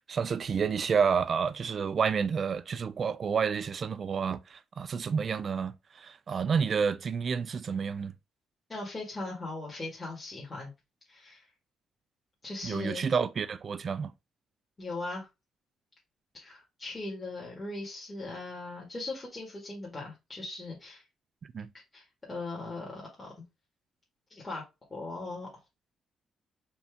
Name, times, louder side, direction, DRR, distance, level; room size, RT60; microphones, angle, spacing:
voice 1, 0.1-8.1 12.6-14.1 21.5-21.7, right 6 dB, 50° right, 0.4 m, -29 dB
voice 2, 8.7-10.7 11.1-11.4 12.4-13.1 14.8-15.3 16.3-21.0 21.9-23.3 24.3-24.6 24.9-25.5, left 2 dB, 25° left, 1.8 m, -39 dB
4.3 x 2.8 x 3.5 m
cardioid pair, 90°, 0 cm